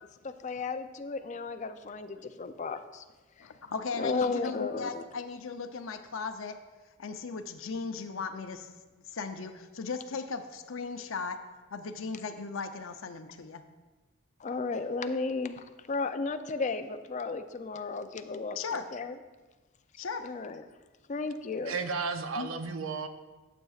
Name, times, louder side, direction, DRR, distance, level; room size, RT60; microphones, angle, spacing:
voice 1, 0.2-3.0 3.4-3.5 4.0-5.0 14.4-19.2 20.2-20.6 21.1-21.7, left 4 dB, 35° left, 9 dB, 0.4 m, -34 dB
voice 2, 3.4-6.6 7.0-13.6 18.6-18.9 20.0-20.3 22.4-22.5, left 4 dB, 75° left, 8 dB, 0.6 m, -37 dB
voice 3, 21.7-23.1, right 4 dB, 90° right, 8 dB, 0.6 m, -33 dB
11.5 x 7.5 x 2.4 m, 1.2 s
head